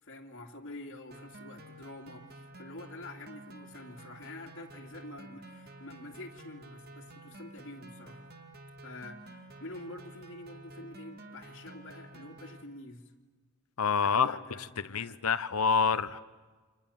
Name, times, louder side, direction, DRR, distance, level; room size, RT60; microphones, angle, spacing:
voice 1, 0.0-8.2 8.8-13.1 14.0-15.2, left 2 dB, 60° left, 2.6 m, -47 dB
sound 1, 1.1-12.6, right 1 dB, 45° right, 2.4 m, -50 dB
voice 2, 13.8-14.4 14.9-16.2, left 5 dB, 75° left, 0.8 m, -27 dB
29.5 x 27.0 x 7.1 m
head